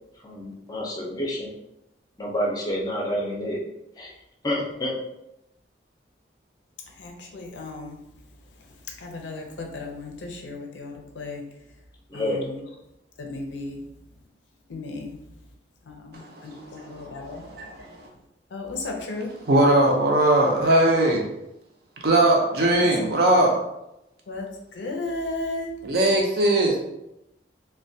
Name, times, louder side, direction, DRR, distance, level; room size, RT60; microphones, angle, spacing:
voice 1, 0.2-1.5 2.2-3.6 4.0-4.1 4.4-5.0 12.1-12.4, left 1 dB, 20° left, 0.5 m, -28 dB
voice 2, 7.0-8.0 9.0-11.4 12.1-12.7 13.2-13.9 14.7-15.2 15.9-17.8 18.5-19.3 22.8-23.1 24.3-25.7, left 2 dB, 85° left, 0.5 m, -35 dB
voice 3, 16.8-18.1 19.5-21.2 22.0-23.6 25.8-26.8, right 1 dB, 60° right, 0.5 m, -20 dB
2.2 x 2.2 x 2.6 m
head